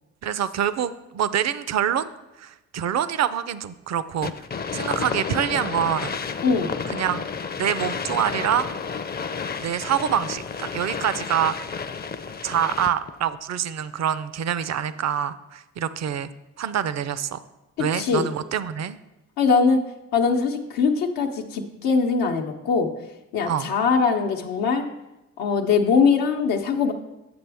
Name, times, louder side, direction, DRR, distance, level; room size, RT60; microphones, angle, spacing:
voice 1, 0.2-2.1 2.4-4.3 4.7-6.2 6.9-7.2 7.6-8.8 9.6-11.6 12.4-16.3 16.6-17.4 17.8-19.0 23.5-23.7, right 9 dB, 50° right, 14 dB, 0.5 m, -25 dB
sound 1, 4.2-13.1, left 5 dB, 30° left, 0.5 m, -31 dB
voice 2, 6.4-6.8 17.8-18.3 19.4-19.8 20.1-22.9 23.3-24.9 25.4-26.9, left 5 dB, 90° left, 3 dB, 0.8 m, -21 dB
7.8 x 6.8 x 3.4 m, 0.99 s
supercardioid pair, 50°, 34 cm